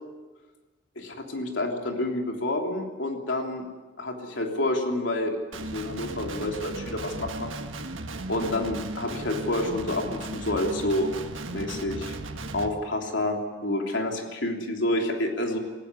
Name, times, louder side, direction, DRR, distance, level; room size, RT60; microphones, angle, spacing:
voice 1, 0.9-3.6 4.0-7.5 8.3-11.1 11.5-12.2 12.5-13.4 13.6-15.6, left 1 dB, 70° left, 2 dB, 3.2 m, -28 dB
Guitar, 5.5-12.7, right 2 dB, 80° right, 1.6 m, -36 dB
19.5 x 15.5 x 9.7 m, 1.3 s
head